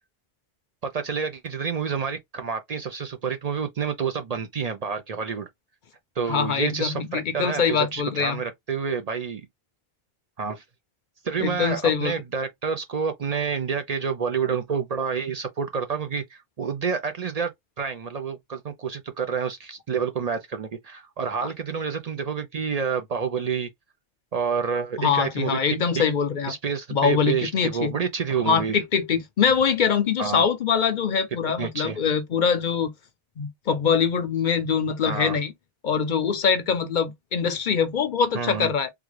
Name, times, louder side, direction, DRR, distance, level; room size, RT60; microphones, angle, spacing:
voice 1, 0.8-5.5 6.2-9.4 10.4-10.6 11.2-17.5 17.8-23.7 24.3-25.6 26.5-28.8 30.2-30.4 31.6-32.0 35.1-35.4 38.3-38.7, right 6 dB, 50° right, 0.5 m, -28 dB
voice 2, 6.3-8.4 11.4-12.2 25.0-26.5 26.9-27.9 28.5-32.9 33.4-35.5 35.8-38.9, left 6 dB, 60° left, 0.6 m, -23 dB
3.7 x 2.2 x 3.1 m
omnidirectional pair, 1.0 m